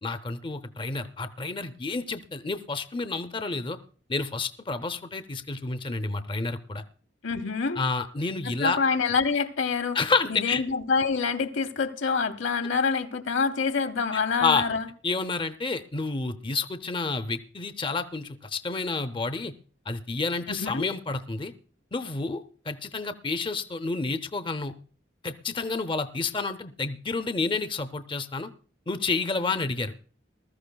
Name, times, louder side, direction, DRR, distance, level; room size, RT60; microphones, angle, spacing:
voice 1, 0.0-3.8 4.1-6.8 7.8-8.8 9.9-10.6 14.1-14.6 15.0-19.5 19.9-21.5 21.9-24.7 25.2-28.5 28.9-30.0, left 4 dB, 25° left, 0.5 m, -29 dB
voice 2, 7.2-7.8 8.6-10.0 10.3-14.8 20.5-20.8, left 5 dB, 90° left, 0.9 m, -26 dB
20.0 x 13.5 x 2.2 m
head